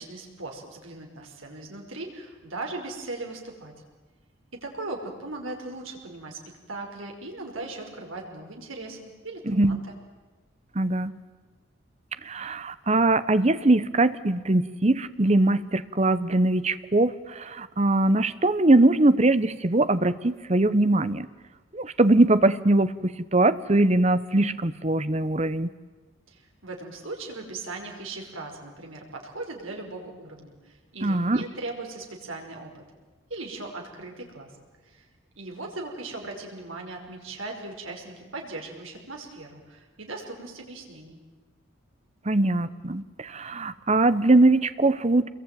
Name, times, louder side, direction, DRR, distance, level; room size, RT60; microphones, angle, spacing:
voice 1, 0.0-3.7 4.5-6.4 6.7-10.0 26.3-32.8 33.3-34.5 34.9-35.1 35.4-41.2, right 2 dB, 80° right, 2 dB, 5.2 m, -38 dB
voice 2, 9.5-9.8 10.7-11.1 12.2-21.3 21.7-25.7 31.0-31.4 42.2-45.3, right 2 dB, 30° right, 14 dB, 0.9 m, -22 dB
27.5 x 22.0 x 9.2 m, 1.3 s
head